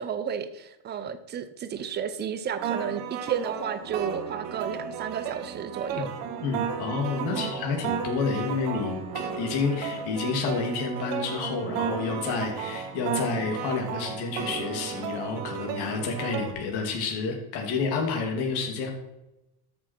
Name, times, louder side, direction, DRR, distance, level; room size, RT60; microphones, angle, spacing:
voice 1, 0.0-6.1 7.3-7.5, right 7 dB, 20° right, 12 dB, 0.5 m, -32 dB
sound 1, 2.6-16.5, right 7 dB, 70° right, 1.6 m, -34 dB
voice 2, 6.4-18.9, left 4 dB, 50° left, 1 dB, 2.6 m, -29 dB
13.0 x 6.3 x 4.4 m, 0.95 s
cardioid pair, 155°, 47 cm